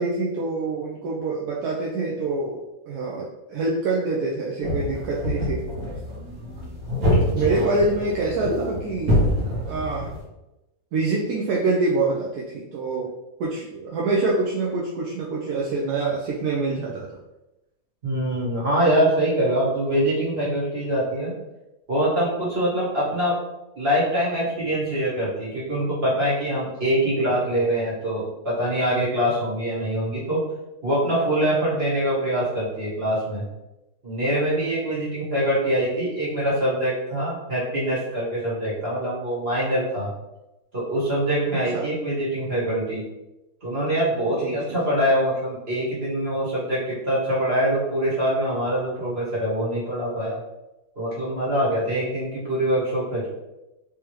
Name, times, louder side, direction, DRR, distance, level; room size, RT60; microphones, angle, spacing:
voice 1, 0.0-5.6 7.3-9.1 9.7-10.1 10.9-13.1 13.4-17.1 41.7-41.9 44.4-44.6, right 3 dB, 80° right, -4 dB, 1.2 m, -25 dB
sound 1, 4.6-10.2, equal, 65° right, 1.6 m, -25 dB
voice 2, 7.1-7.7 18.0-21.3 21.9-23.4 23.8-30.4 30.8-33.4 34.0-40.1 40.7-43.0 43.6-50.4 51.0-53.3, right 1 dB, 40° right, -8 dB, 1.7 m, -24 dB
3.4 x 3.3 x 3.0 m, 0.97 s
omnidirectional pair, 1.6 m